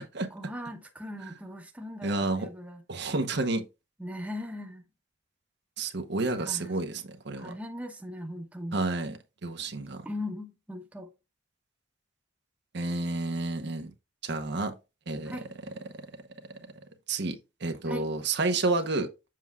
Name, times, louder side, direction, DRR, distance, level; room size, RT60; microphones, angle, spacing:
voice 1, 0.3-2.8 4.0-4.8 6.4-6.8 7.3-8.8 10.0-11.1 15.2-15.5 17.9-18.1, left 1 dB, 10° right, 1.0 m, -39 dB
voice 2, 2.0-2.5 2.9-3.6 5.8-7.5 8.7-10.0 12.7-13.9 14.2-14.7 15.1-15.4 17.1-19.1, right 3 dB, 60° right, 0.9 m, -30 dB
7.6 x 6.1 x 2.4 m
head